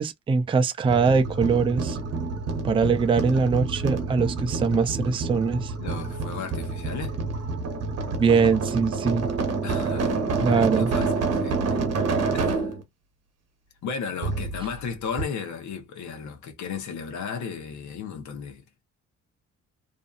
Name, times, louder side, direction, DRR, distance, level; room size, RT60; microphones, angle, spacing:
voice 1, 0.0-2.0 2.6-5.7 8.2-9.3 10.4-10.9, right 5 dB, 20° right, 0.4 m, -22 dB
sound 1, 0.8-12.8 14.2-14.9 15.2-15.3, right 4 dB, 55° right, 0.8 m, -28 dB
voice 2, 5.8-7.2 9.6-11.1 11.3-11.8 12.3-12.7 13.8-18.8, left 6 dB, 75° left, 0.8 m, -35 dB
2.6 x 2.4 x 2.3 m
cardioid pair, 90°, 30 cm